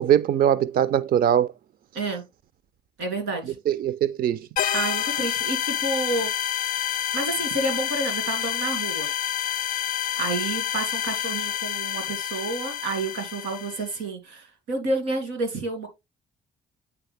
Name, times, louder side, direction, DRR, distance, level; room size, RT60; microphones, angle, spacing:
voice 1, 0.0-1.5 3.7-4.5, right 10 dB, 50° right, 0.4 m, -21 dB
voice 2, 3.0-3.5 4.7-6.3 7.1-9.1 10.2-15.9, right 2 dB, 90° right, 2.3 m, -29 dB
sound 1, 4.6-13.9, left 10 dB, 50° left, 0.4 m, -28 dB
8.7 x 3.8 x 3.4 m
supercardioid pair, 70°, 19 cm